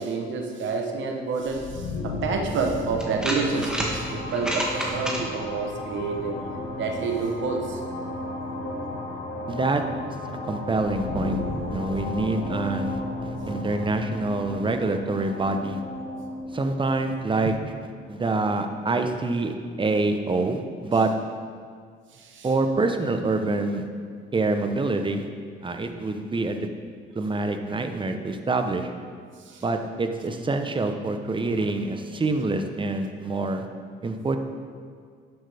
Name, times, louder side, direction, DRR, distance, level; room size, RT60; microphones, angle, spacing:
voice 1, 0.0-6.4 6.7-7.8 8.5-8.8 17.4-17.5 22.1-22.5 29.4-29.6, right 4 dB, 70° right, 2 dB, 1.0 m, -29 dB
sound 1, 1.4-19.1, left 2 dB, 85° left, 1.5 m, -34 dB
sound 2, 2.2-2.3 3.0-3.9 4.3-5.2, equal, 5° right, 1.8 m, -29 dB
voice 2, 9.5-9.8 10.4-11.4 11.7-15.8 16.5-17.6 18.1-21.1 22.4-23.9 24.3-25.3 25.6-26.7 27.1-28.9 29.6-33.7 34.0-34.4, right 3 dB, 25° right, 6 dB, 0.8 m, -26 dB
11.0 x 8.0 x 3.5 m, 2.1 s
cardioid pair, 90°, 20 cm